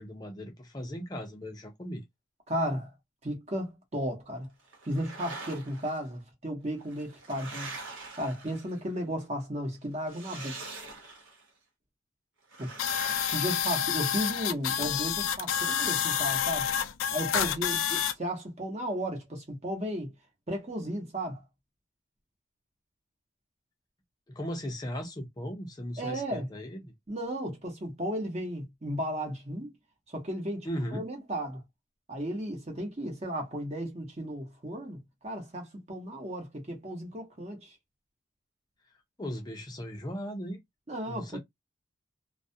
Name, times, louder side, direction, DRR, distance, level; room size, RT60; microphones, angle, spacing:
voice 1, 0.0-2.0 24.3-26.9 30.6-31.0 39.2-40.6 41.1-41.4, equal, 20° left, 0.5 m, -37 dB
voice 2, 2.5-2.9 3.2-4.5 4.8-7.7 8.2-10.7 12.6-12.7 13.2-16.7 17.1-20.1 20.5-21.4 26.0-26.5 27.1-29.7 30.1-31.6 32.1-35.0 35.2-37.8 40.9-41.4, equal, 35° right, 0.9 m, -34 dB
sound 1, 4.7-6.0 6.8-9.0 10.0-11.5 12.5-14.4, right 3 dB, 90° right, 1.0 m, -44 dB
sound 2, 12.8-18.1, left 9 dB, 90° left, 0.3 m, -29 dB
2.3 x 2.1 x 2.6 m
head